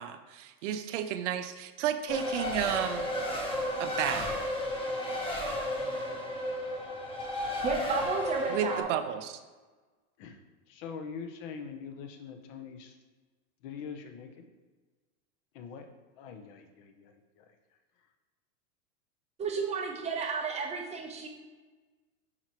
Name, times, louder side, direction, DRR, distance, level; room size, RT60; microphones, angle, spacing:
voice 1, 0.0-3.1 3.8-4.3 8.5-9.4, right 10 dB, 55° right, 10 dB, 0.6 m, -32 dB
Race car auto racing, 2.1-8.8, left 1 dB, 10° left, 1.0 m, -33 dB
voice 2, 7.6-8.9 19.4-21.3, right 4 dB, 15° right, 2 dB, 0.7 m, -32 dB
voice 3, 10.7-12.9 13.6-14.5 15.5-15.8 16.2-17.1 17.4-17.5, left 6 dB, 40° left, 5 dB, 0.8 m, -43 dB
9.8 x 4.6 x 3.0 m, 1.3 s
supercardioid pair, 145°, 43 cm